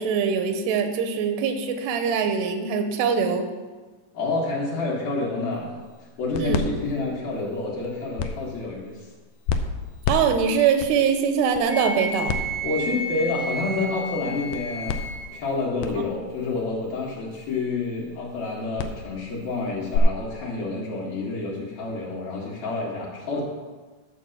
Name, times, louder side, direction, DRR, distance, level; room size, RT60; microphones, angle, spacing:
voice 1, 0.0-3.4 6.4-6.7 10.1-12.4, right 6 dB, 80° right, 6 dB, 2.8 m, -23 dB
voice 2, 4.1-5.8 6.2-9.1 12.6-15.0 15.3-23.4, left 3 dB, 65° left, -7 dB, 3.2 m, -28 dB
sound 1, 5.5-20.0, left 6 dB, 80° left, 2.2 m, -34 dB
Wind instrument woodwind instrument, 11.7-15.3, right 1 dB, 30° right, 1.0 m, -32 dB
12.5 x 4.6 x 7.1 m, 1.3 s
omnidirectional pair, 4.9 m